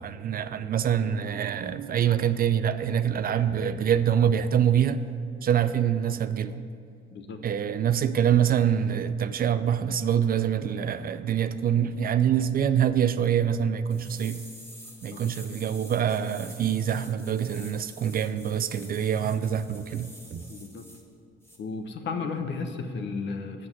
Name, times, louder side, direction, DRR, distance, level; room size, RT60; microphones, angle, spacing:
voice 1, 0.0-5.0 5.4-6.6 7.4-14.4 15.0-20.4, right 9 dB, 45° right, 12 dB, 0.5 m, -25 dB
voice 2, 7.1-7.4 15.1-15.4 20.5-20.9 21.6-23.7, left 4 dB, 60° left, 6 dB, 1.0 m, -34 dB
sound 1, 13.9-21.0 21.4-21.6, equal, 10° left, 2.1 m, -48 dB
7.7 x 6.1 x 7.6 m, 2.5 s
supercardioid pair, 75°, 21 cm